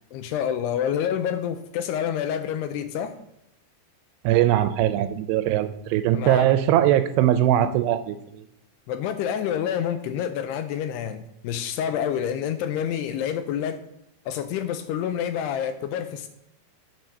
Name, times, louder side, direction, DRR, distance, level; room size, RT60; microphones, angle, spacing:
voice 1, 0.1-3.2 6.1-6.5 8.9-13.8 14.3-16.3, left 9 dB, 80° left, 9 dB, 2.5 m, -28 dB
voice 2, 4.2-8.4, right 12 dB, 85° right, 12 dB, 2.6 m, -21 dB
9.3 x 4.8 x 6.6 m, 0.78 s
omnidirectional pair, 5.1 m